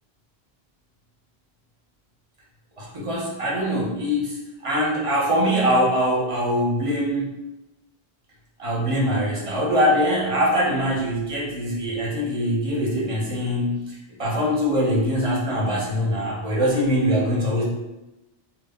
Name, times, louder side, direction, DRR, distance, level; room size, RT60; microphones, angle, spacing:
voice 1, 2.8-7.3 8.6-17.6, equal, 35° right, -4 dB, 0.6 m, -23 dB
2.1 x 2.0 x 3.5 m, 0.98 s
omnidirectional pair, 1.1 m